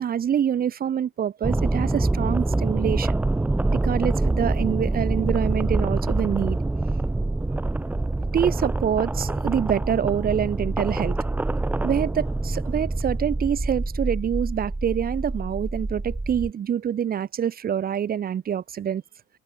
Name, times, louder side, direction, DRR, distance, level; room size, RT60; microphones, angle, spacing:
voice 1, 0.0-3.2 3.7-6.6 8.3-11.2 11.8-19.0, right 9 dB, 30° right, 0.9 m, -26 dB
sound 1, 1.4-16.5, right 2 dB, 5° right, 0.4 m, -25 dB
cardioid pair, 180°, 30 cm